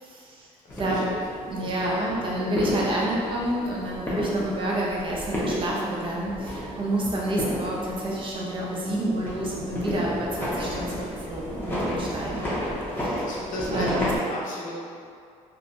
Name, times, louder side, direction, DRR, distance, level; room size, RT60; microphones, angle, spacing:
voice 1, 0.0-0.5 0.8-1.0 1.5-12.4 13.7-14.0, right 1 dB, 40° right, -4 dB, 0.6 m, -29 dB
voice 2, 0.6-1.8 12.3-14.8, left 1 dB, 75° left, -4 dB, 0.6 m, -36 dB
sound 1, 0.7-14.2, equal, 15° left, 0.7 m, -32 dB
2.9 x 2.2 x 2.5 m, 2.3 s
cardioid pair, 105°, 13 cm